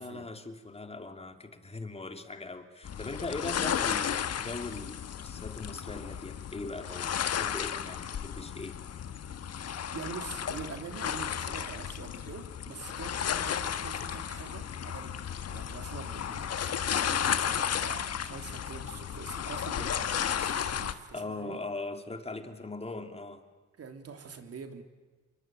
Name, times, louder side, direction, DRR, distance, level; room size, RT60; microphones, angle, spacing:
voice 1, 0.0-8.8 21.1-23.4, left 3 dB, 20° left, 7 dB, 2.8 m, -40 dB
sound 1, 2.8-20.9, left 8 dB, 55° left, 1.5 m, -33 dB
voice 2, 9.3-21.6 23.8-24.8, right 5 dB, 50° right, 7 dB, 3.2 m, -45 dB
27.5 x 23.5 x 9.2 m, 1.3 s
cardioid pair, 90°, 30 cm